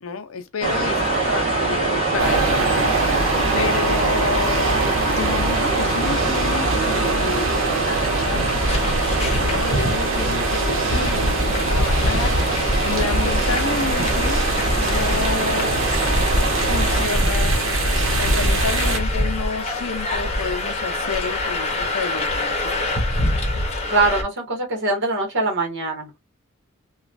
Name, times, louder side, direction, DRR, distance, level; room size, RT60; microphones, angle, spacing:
voice 1, 0.0-2.8 3.5-4.8 5.1-7.5 7.8-8.6 9.4-12.4 12.8-14.4 14.8-15.8 16.6-17.6 18.2-22.9, left 5 dB, 75° left, 0.6 m, -30 dB
sound 1, 0.6-17.1, right 2 dB, 30° right, 1.4 m, -24 dB
sound 2, 2.2-19.0, right 3 dB, 75° right, 1.0 m, -24 dB
sound 3, 8.3-24.2, left 1 dB, 30° left, 0.8 m, -24 dB
voice 2, 23.9-26.1, right 3 dB, 60° right, 1.4 m, -22 dB
3.0 x 2.3 x 2.5 m
head